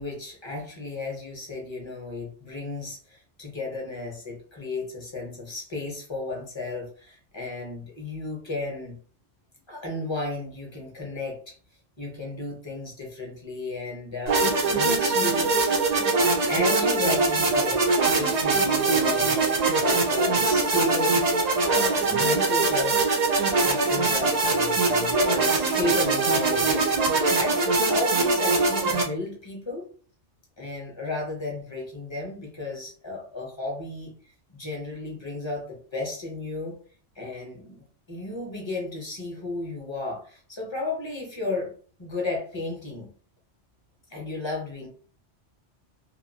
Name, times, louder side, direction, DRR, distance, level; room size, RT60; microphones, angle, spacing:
voice 1, 0.0-9.0 9.7-11.5 12.0-15.5 16.5-17.9 18.1-19.4 19.8-21.3 21.6-23.0 23.6-29.9 30.6-34.1 34.5-36.7 37.2-41.7 42.0-43.1 44.1-44.9, left 2 dB, 25° left, -1 dB, 0.8 m, -33 dB
sound 1, 14.3-29.0, right 3 dB, 50° right, 0.5 m, -22 dB
2.9 x 2.5 x 2.7 m, 0.43 s
omnidirectional pair, 1.2 m